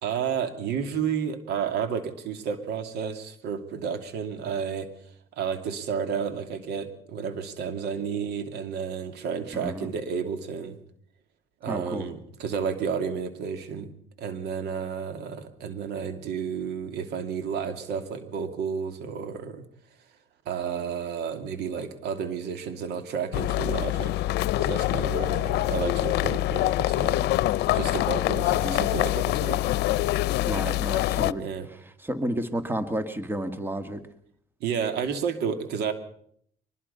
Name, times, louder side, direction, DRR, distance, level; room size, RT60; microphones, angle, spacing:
voice 1, 0.0-4.9 5.4-10.8 11.6-19.6 20.5-24.1 24.6-27.3 27.7-29.6 31.3-31.7 34.6-35.9, right 6 dB, 75° right, 9 dB, 2.6 m, -31 dB
voice 2, 9.5-9.9 11.7-12.1 28.5-28.9 30.5-34.0, right 1 dB, 10° right, 9 dB, 1.9 m, -32 dB
sound 1, 23.3-31.3, left 16 dB, 80° left, 0.7 m, -25 dB
23.5 x 21.0 x 5.6 m, 0.65 s
cardioid pair, 110°, 17 cm